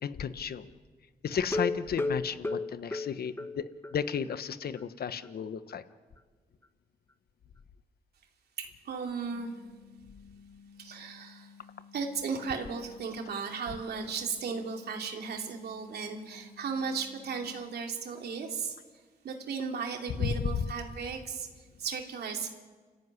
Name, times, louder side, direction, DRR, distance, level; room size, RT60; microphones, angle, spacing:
voice 1, 0.0-0.7 1.2-5.8 20.2-20.6, left 7 dB, 75° left, 12 dB, 1.2 m, -33 dB
sound 1, 1.5-4.0 4.3-4.4 4.8-4.9 5.2-5.3, left 2 dB, 15° left, 1.4 m, -33 dB
voice 2, 8.6-9.5 10.8-11.5 11.9-18.7 19.2-22.5, right 5 dB, 85° right, 3 dB, 3.0 m, -36 dB
sound 2, 9.3-17.7, left 6 dB, 20° right, 5.4 m, -55 dB
29.0 x 15.0 x 9.8 m, 1.5 s
cardioid pair, 60°, 16 cm